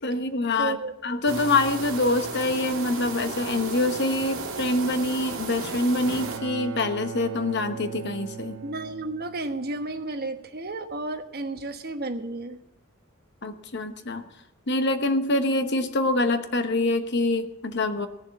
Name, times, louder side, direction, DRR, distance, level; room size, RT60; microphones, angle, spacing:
voice 1, 0.0-0.8 1.0-8.6 13.4-14.2 14.7-18.1, left 2 dB, 55° left, 8 dB, 1.1 m, -25 dB
voice 2, 0.6-0.9 8.6-12.6, right 2 dB, 45° right, 6 dB, 1.2 m, -32 dB
sound 1, 1.3-6.4, right 3 dB, 65° right, 2.5 m, -34 dB
Bowed string instrument, 5.6-9.8, right 5 dB, 85° right, 0.7 m, -38 dB
17.0 x 7.1 x 8.3 m, 0.94 s
head